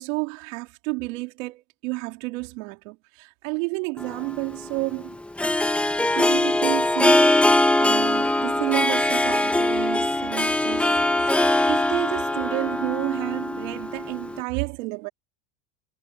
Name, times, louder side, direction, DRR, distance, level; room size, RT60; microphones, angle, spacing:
voice 1, 0.0-5.2 6.1-10.9 11.2-11.4 11.7-15.1, right 26 dB, 65° right, 3.5 m, -31 dB
Harp, 4.0-14.4, left 1 dB, 5° left, 1.0 m, -22 dB
cardioid pair, 170°, 41 cm